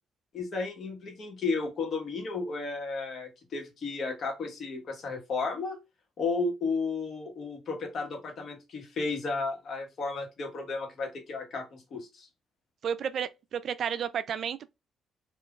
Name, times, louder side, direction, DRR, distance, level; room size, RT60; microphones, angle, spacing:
voice 1, 0.3-5.8 6.2-12.3, left 4 dB, 60° left, 1.2 m, -33 dB
voice 2, 12.8-14.7, right 8 dB, 60° right, 0.4 m, -32 dB
3.6 x 2.5 x 2.3 m
cardioid pair, 90°, 0 cm